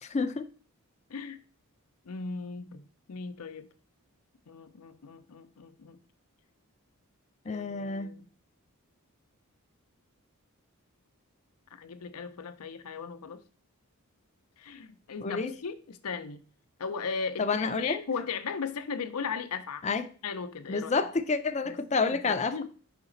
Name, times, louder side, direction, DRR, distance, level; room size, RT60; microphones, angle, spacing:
voice 1, 0.0-0.5 7.5-8.1 15.2-15.5 17.4-18.0 19.8-20.0 20.7-22.6, left 4 dB, 30° left, 0.5 m, -29 dB
voice 2, 2.0-3.7 4.5-6.0 7.4-8.3 11.7-13.4 14.6-16.4 16.8-19.9 20.2-21.1 21.6-22.6, left 5 dB, 85° left, 0.6 m, -37 dB
5.2 x 4.9 x 3.8 m
head